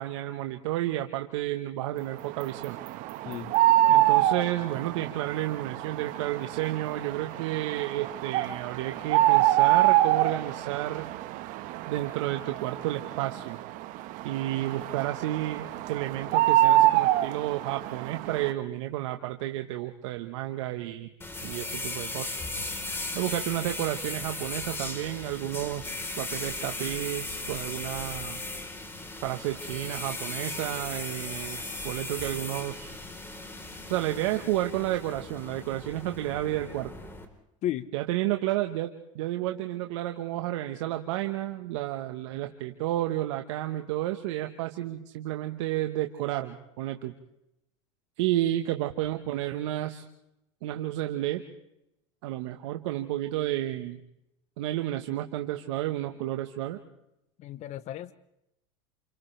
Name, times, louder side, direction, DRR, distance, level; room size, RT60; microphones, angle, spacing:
voice 1, 0.0-2.8 3.9-11.1 11.9-13.6 14.2-21.1 21.4-22.4 23.1-28.4 29.2-33.0 33.9-36.9 37.9-47.1 48.2-50.0 50.6-51.4 52.2-54.0 54.6-56.8, right 14 dB, 75° right, 6 dB, 1.4 m, -31 dB
sound 1, 2.2-18.5, right 14 dB, 60° right, 1.4 m, -26 dB
sound 2, 21.2-37.3, left 2 dB, 15° left, 4.0 m, -37 dB
voice 2, 57.4-58.1, left 12 dB, 45° left, 14 dB, 1.0 m, -33 dB
29.0 x 29.0 x 3.4 m, 0.84 s
supercardioid pair, 105°, 16 cm